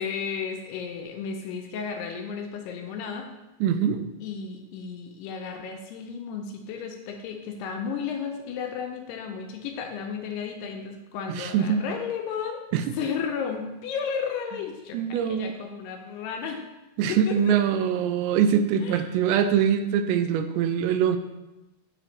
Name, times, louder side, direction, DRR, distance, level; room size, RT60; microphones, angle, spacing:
voice 1, 0.0-3.3 4.2-12.6 12.9-16.6 17.1-17.6 18.8-19.0, left 6 dB, 80° left, 3 dB, 2.5 m, -33 dB
voice 2, 3.6-4.0 11.3-11.8 12.7-12.8 14.9-15.5 17.0-21.2, right 8 dB, 85° right, 9 dB, 2.8 m, -23 dB
9.8 x 5.0 x 3.1 m, 0.99 s
omnidirectional pair, 5.0 m